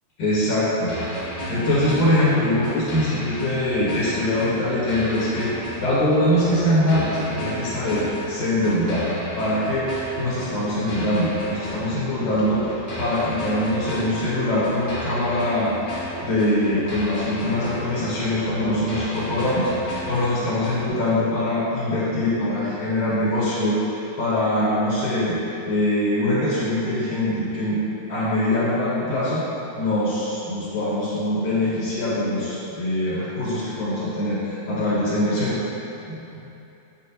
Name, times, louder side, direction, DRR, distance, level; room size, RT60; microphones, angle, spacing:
voice 1, 0.2-0.9 1.5-9.0 9.4-9.9 10.2-15.7 16.2-25.4 25.7-27.8 28.1-29.4 29.8-35.6 36.1-36.4, left 1 dB, 70° left, -8 dB, 2.6 m, -23 dB
sound 1, 0.9-20.9, equal, 50° left, 0.7 m, -34 dB
9.7 x 4.7 x 2.9 m, 2.9 s
omnidirectional pair, 3.7 m